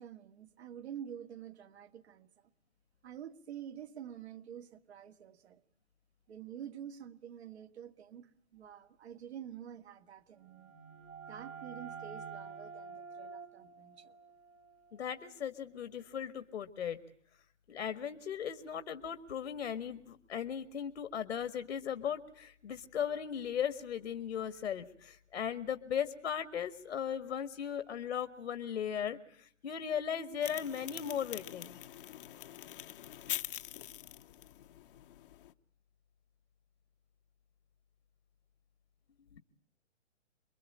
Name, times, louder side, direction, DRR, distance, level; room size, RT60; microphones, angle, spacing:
voice 1, 0.0-2.5 3.0-5.6 6.3-10.7 11.3-14.2, right 9 dB, 60° right, 2.1 m, -48 dB
sound 1, 10.4-15.9, right 5 dB, 80° right, 4.9 m, -49 dB
voice 2, 14.9-17.0 17.7-31.8 39.3-39.4, left 8 dB, 70° left, 1.9 m, -37 dB
sound 2, 30.4-35.5, left 12 dB, 45° left, 1.1 m, -44 dB
28.0 x 22.5 x 8.7 m
hypercardioid pair, 140°, 37 cm